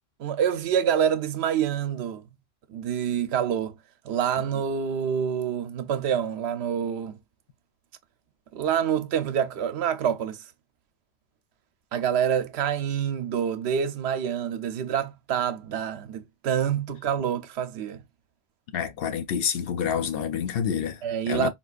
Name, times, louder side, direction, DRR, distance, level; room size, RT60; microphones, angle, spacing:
voice 1, 0.2-2.2 2.7-3.8 4.0-7.2 8.5-10.4 11.9-18.0 21.0-21.5, right 8 dB, 80° right, 0.8 m, -27 dB
voice 2, 18.7-21.5, left 7 dB, 65° left, 0.7 m, -28 dB
3.7 x 2.4 x 2.3 m
omnidirectional pair, 1.1 m